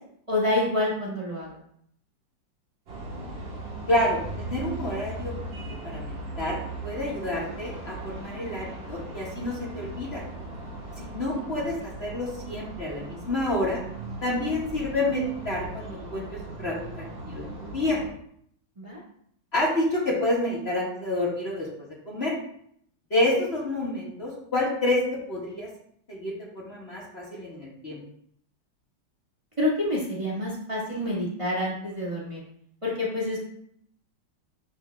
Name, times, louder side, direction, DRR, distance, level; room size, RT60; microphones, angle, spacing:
voice 1, 0.3-1.6 18.8-19.0 29.6-32.4 32.8-33.4, left 1 dB, 15° right, -6 dB, 1.8 m, -27 dB
sound 1, 2.9-18.1, right 2 dB, 90° right, 2.7 m, -38 dB
voice 2, 3.9-5.3 5.8-6.6 6.8-10.2 11.0-11.7 12.0-13.8 14.2-18.0 19.5-21.7 22.1-22.3 23.1-25.0 25.3-25.7 26.1-28.0, left 1 dB, 35° left, -5 dB, 1.9 m, -28 dB
11.0 x 4.0 x 3.5 m, 0.68 s
omnidirectional pair, 2.0 m